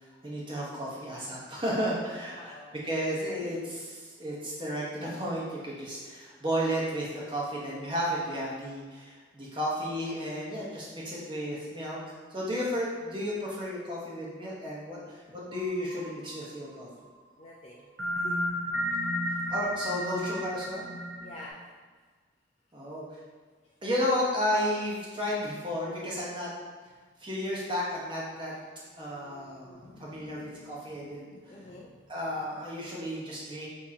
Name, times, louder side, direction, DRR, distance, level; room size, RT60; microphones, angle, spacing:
voice 1, 0.2-2.5 2.8-12.0 12.3-16.9 19.5-20.8 22.7-23.0 23.8-26.5 27.2-28.5 29.0-31.3 32.1-33.7, equal, 25° right, -5 dB, 1.0 m, -33 dB
voice 2, 2.2-3.1 3.4-3.6 17.4-17.9 18.2-18.3 21.2-21.6 23.6-23.7 28.5-28.6 28.9-31.9 32.4-32.7, left 1 dB, 35° left, -5 dB, 0.5 m, -50 dB
Clockwork Bells, 15.5-16.8 18.0-21.5, equal, 85° right, 0.9 m, -33 dB
6.2 x 2.9 x 2.8 m, 1.5 s
head